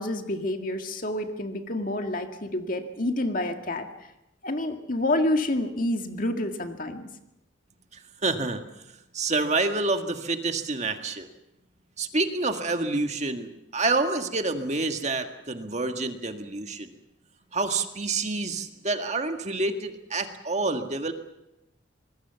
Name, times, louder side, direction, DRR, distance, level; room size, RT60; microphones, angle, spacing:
voice 1, 0.0-3.9 4.4-7.1, left 1 dB, 45° left, 5 dB, 2.0 m, -28 dB
voice 2, 8.2-8.6 9.1-11.3 12.0-16.9 17.5-21.1, right 3 dB, 35° right, 6 dB, 1.8 m, -28 dB
26.0 x 20.5 x 7.1 m, 0.89 s
head